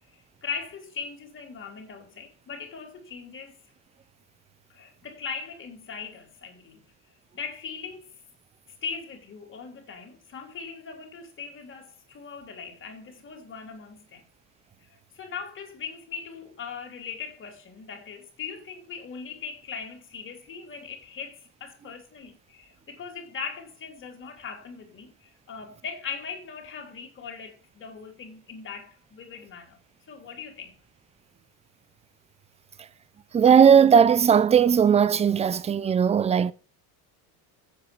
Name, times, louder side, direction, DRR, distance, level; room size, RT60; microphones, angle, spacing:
voice 1, 0.1-3.6 4.7-6.9 7.3-8.1 8.7-14.3 14.8-29.8 30.1-30.8, left 6 dB, 30° left, 3.5 m, -39 dB
voice 2, 33.3-36.5, right 7 dB, 15° right, 0.6 m, -18 dB
8.1 x 7.6 x 7.7 m
cardioid pair, 150°, 43 cm